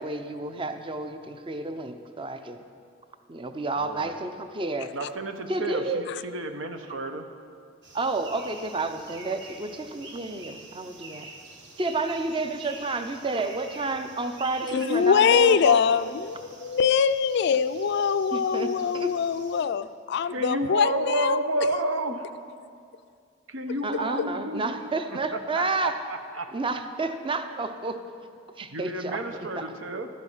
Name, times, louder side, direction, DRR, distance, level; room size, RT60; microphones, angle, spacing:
voice 1, 0.0-2.6 3.3-4.9 5.5-6.0 7.9-11.3 11.8-15.8 18.3-19.1 23.8-26.0 26.5-28.0 28.6-29.2, right 3 dB, 25° right, 8 dB, 0.6 m, -30 dB
voice 2, 3.8-4.2 4.9-7.3 20.2-22.4 23.5-26.5 28.7-30.1, right 1 dB, 80° right, 7 dB, 0.9 m, -31 dB
sound 1, 7.8-19.6, right 3 dB, 60° right, 1.4 m, -47 dB
voice 3, 14.7-21.4, left 7 dB, 60° left, 13 dB, 0.3 m, -23 dB
12.5 x 9.5 x 5.6 m, 2.3 s
head